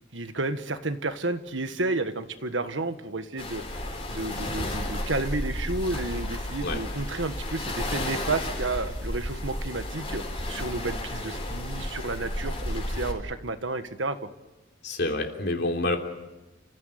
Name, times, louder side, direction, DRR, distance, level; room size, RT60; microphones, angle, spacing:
voice 1, 0.1-14.2, right 2 dB, 75° right, 9 dB, 1.5 m, -31 dB
sound 1, 3.4-13.1, left 1 dB, 30° left, 4.7 m, -32 dB
voice 2, 14.8-16.0, left 2 dB, 60° left, 3 dB, 3.3 m, -27 dB
30.0 x 16.0 x 9.3 m, 1.1 s
head